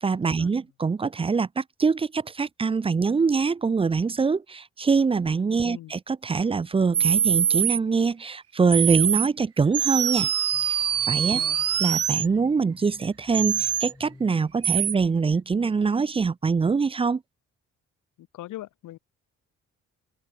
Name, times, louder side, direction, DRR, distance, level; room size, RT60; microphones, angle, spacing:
voice 1, 0.0-10.3 10.6-10.8 11.1-11.4 11.8-17.2, right 5 dB, 20° right, 0.4 m, -24 dB
sound 1, 6.9-7.8 8.7-9.3 9.7-12.3 13.3-13.9 14.6-14.9, right 9 dB, 50° right, 1.6 m, -24 dB
sound 2, 10.5-15.6, left 2 dB, 15° left, 8.0 m, -54 dB
voice 2, 11.4-11.7 18.2-19.0, left 15 dB, 85° left, 3.2 m, -41 dB
cardioid pair, 90°, 30 cm